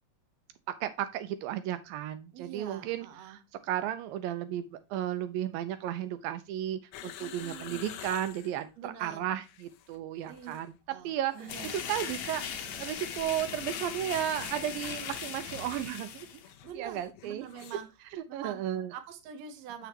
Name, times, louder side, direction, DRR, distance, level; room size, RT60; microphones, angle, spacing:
voice 1, 0.8-11.3 11.9-12.4 12.8-16.3 16.7-17.5 18.1-18.9, right 11 dB, 80° right, 10 dB, 2.3 m, -34 dB
voice 2, 2.3-3.4 7.2-7.9 8.8-9.3 10.3-10.5 10.9-11.8 16.6-17.9 18.3-19.9, right 8 dB, 65° right, 6 dB, 1.8 m, -45 dB
sound 1, 6.9-8.6 9.3-10.0 10.2-10.6 11.3-17.9 18.1-18.2, left 10 dB, 90° left, 2.7 m, -49 dB
sound 2, 11.5-16.5, left 7 dB, 65° left, 1.9 m, -39 dB
7.1 x 6.7 x 2.8 m, 0.27 s
omnidirectional pair, 4.2 m